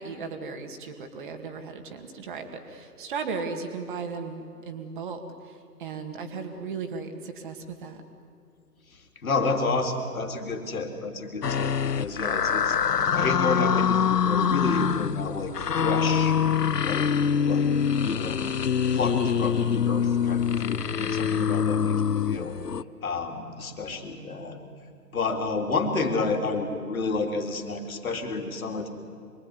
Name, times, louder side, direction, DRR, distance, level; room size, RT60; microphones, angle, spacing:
voice 1, 0.0-8.0, right 5 dB, 30° right, 6 dB, 2.2 m, -36 dB
voice 2, 9.2-12.8 13.1-16.3 16.8-17.7 18.0-18.4 18.9-22.6 23.0-24.6 25.1-28.9, left 3 dB, 60° left, 5 dB, 3.6 m, -30 dB
sound 1, 11.4-22.8, left 7 dB, 75° left, 0.9 m, -25 dB
26.0 x 21.5 x 9.6 m, 2.3 s
figure-of-eight pair, 140°, 48 cm